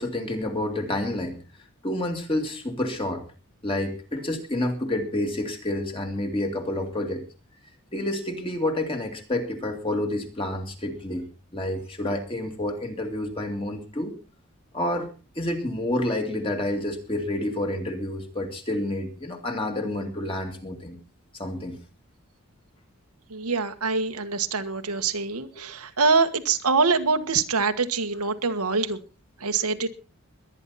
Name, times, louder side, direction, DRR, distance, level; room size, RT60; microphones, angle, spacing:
voice 1, 0.0-1.4 1.8-3.2 3.6-7.2 7.9-14.2 14.7-15.1 15.4-21.0 21.3-21.8, left 1 dB, 25° left, 4 dB, 2.4 m, -29 dB
voice 2, 23.3-29.0 29.4-29.9, right 4 dB, 90° right, 7 dB, 1.5 m, -24 dB
22.0 x 9.9 x 4.2 m, 0.33 s
head